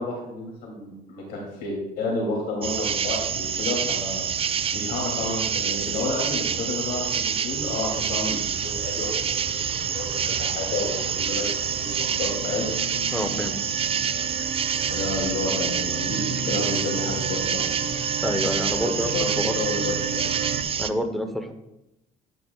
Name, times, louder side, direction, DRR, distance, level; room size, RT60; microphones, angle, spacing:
voice 1, 0.0-4.3 4.7-12.7 14.9-17.7 18.9-20.3, left 2 dB, 70° left, -3 dB, 2.9 m, -30 dB
sound 1, 2.6-20.9, right 7 dB, 35° right, 0.4 m, -27 dB
sound 2, 7.4-7.9 8.3-20.6, right 5 dB, 55° right, 1.0 m, -34 dB
voice 2, 13.1-13.5 18.2-19.1 19.4-19.5 20.8-21.5, equal, ahead, 6 dB, 0.9 m, -27 dB
11.0 x 9.5 x 2.4 m, 0.88 s
cardioid pair, 110°, 17 cm